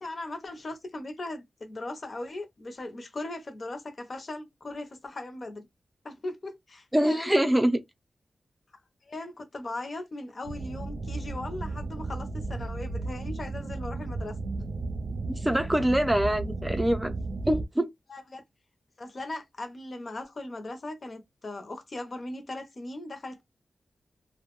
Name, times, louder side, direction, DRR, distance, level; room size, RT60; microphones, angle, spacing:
voice 1, 0.0-5.7 6.0-7.4 9.1-14.4 18.1-18.4 19.0-23.4, left 2 dB, 50° left, 0.6 m, -38 dB
voice 2, 6.9-7.8 15.4-17.1 17.4-17.9, right 1 dB, 10° right, 0.5 m, -24 dB
sound 1, 10.4-17.7, right 3 dB, 75° right, 0.4 m, -34 dB
2.2 x 2.1 x 2.9 m
cardioid pair, 75°, 0 cm